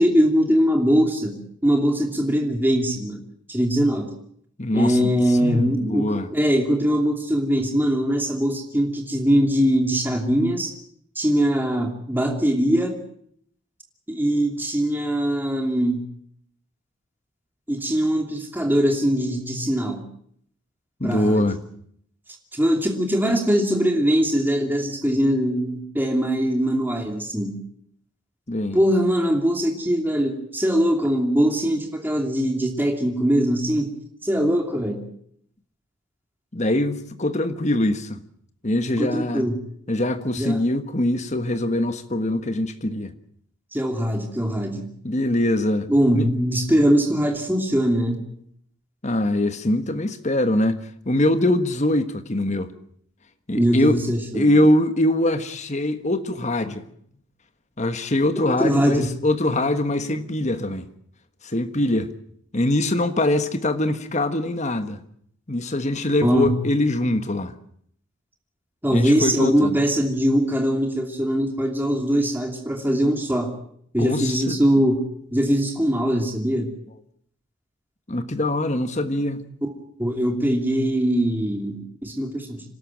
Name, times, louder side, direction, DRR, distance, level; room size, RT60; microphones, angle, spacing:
voice 1, 0.0-3.2 3.5-4.1 4.7-10.7 11.2-13.0 14.1-16.0 17.7-20.0 21.0-21.5 22.5-27.6 28.7-33.9 34.2-35.0 39.0-39.6 40.4-40.6 43.7-44.9 45.9-48.2 53.5-54.5 58.4-59.1 66.2-66.5 68.8-73.5 73.9-76.7 80.0-82.6, equal, 10° right, 2.8 m, -21 dB
voice 2, 4.6-6.3 21.0-21.6 28.5-28.8 36.5-38.2 38.6-39.4 39.9-43.1 45.0-45.9 46.1-46.3 49.0-50.8 51.0-52.7 53.5-54.0 54.3-56.9 57.8-60.9 61.4-62.1 62.5-65.0 65.5-67.5 68.9-69.8 74.0-74.6 78.1-79.5, left 1 dB, 35° left, 1.3 m, -23 dB
27.0 x 12.5 x 8.9 m
head